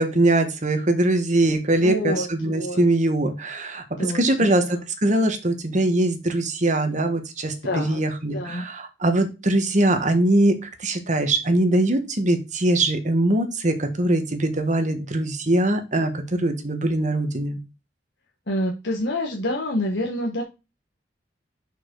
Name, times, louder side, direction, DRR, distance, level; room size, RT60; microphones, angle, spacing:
voice 1, 0.0-3.8 4.1-17.6, right 1 dB, 40° right, 7 dB, 1.4 m, -22 dB
voice 2, 1.8-2.8 4.0-4.8 7.6-8.0 8.3-8.6 18.5-20.4, left 1 dB, 65° left, 0 dB, 1.4 m, -27 dB
6.6 x 6.1 x 3.9 m, 0.27 s
head